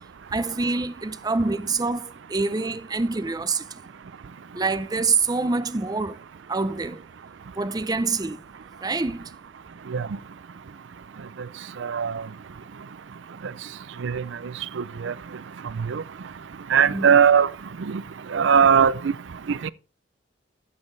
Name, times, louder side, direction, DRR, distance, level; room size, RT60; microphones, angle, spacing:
voice 1, 0.3-3.6 4.5-6.2 6.5-7.0 7.6-8.4 8.8-9.3 16.9-17.1, right 3 dB, 20° right, 0.5 m, -26 dB
voice 2, 11.8-12.1 14.0-14.2 14.8-15.1 15.9-16.0 16.7-17.5 17.9-18.0 18.3-19.1 19.6-19.7, right 7 dB, 75° right, 0.5 m, -19 dB
13.0 x 7.5 x 3.3 m
head